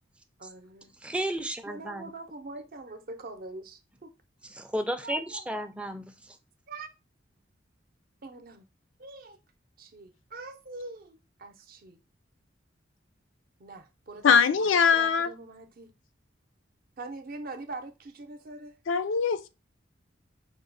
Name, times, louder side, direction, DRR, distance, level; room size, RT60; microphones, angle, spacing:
voice 1, 0.4-0.9 1.7-4.1 5.0-5.4 6.7-6.9 8.2-8.7 9.0-9.4 9.8-12.0 13.6-14.4 14.6-15.9 17.0-18.8, right 3 dB, 50° right, 0.6 m, -43 dB
voice 2, 1.0-2.1 4.5-6.4, right 1 dB, 5° right, 0.4 m, -33 dB
voice 3, 14.2-15.3 18.9-19.5, left 6 dB, 80° left, 0.4 m, -22 dB
5.0 x 2.1 x 3.9 m
head